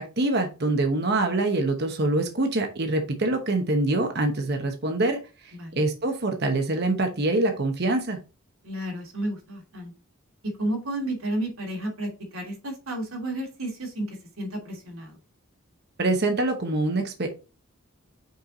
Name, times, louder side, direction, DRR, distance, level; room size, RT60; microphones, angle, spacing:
voice 1, 0.0-5.2 5.8-8.2 16.0-17.3, right 2 dB, 50° right, 5 dB, 1.0 m, -25 dB
voice 2, 5.5-5.8 8.6-9.9 10.6-15.2, right 1 dB, 90° right, 0 dB, 2.8 m, -32 dB
5.5 x 4.5 x 3.9 m, 0.31 s
head